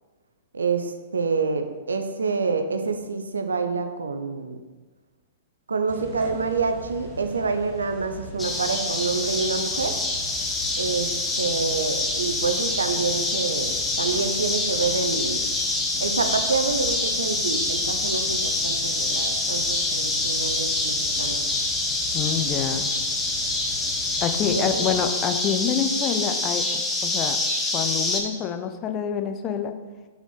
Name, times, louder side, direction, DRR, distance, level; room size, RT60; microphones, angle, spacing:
voice 1, 0.5-4.6 5.7-10.0 10.8-11.1 11.4-15.4 16.0-21.4 24.5-24.8, right 4 dB, 75° right, 7 dB, 0.5 m, -27 dB
sound 1, 5.9-25.0, right 1 dB, 20° right, 1.8 m, -41 dB
sound 2, 8.4-28.2, left 2 dB, 10° left, 0.9 m, -26 dB
voice 2, 22.1-22.9 24.2-27.4 27.7-29.8, left 8 dB, 30° left, 7 dB, 0.5 m, -27 dB
5.7 x 4.3 x 3.9 m, 1.3 s
figure-of-eight pair, 110°, 0 cm